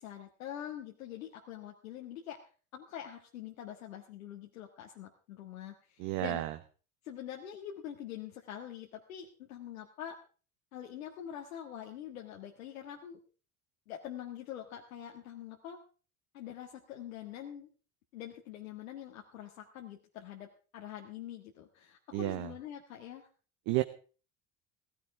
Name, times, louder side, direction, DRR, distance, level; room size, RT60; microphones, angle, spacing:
voice 1, 0.0-2.4 2.7-6.4 7.0-10.2 10.7-13.2 13.9-15.8 16.3-17.7 18.1-23.3, left 10 dB, 85° left, 1 dB, 1.8 m, -45 dB
voice 2, 6.0-6.6 22.1-22.5 23.7-23.8, right 17 dB, 65° right, 8 dB, 1.2 m, -31 dB
16.0 x 16.0 x 3.5 m, 0.38 s
hypercardioid pair, 70°, 40 cm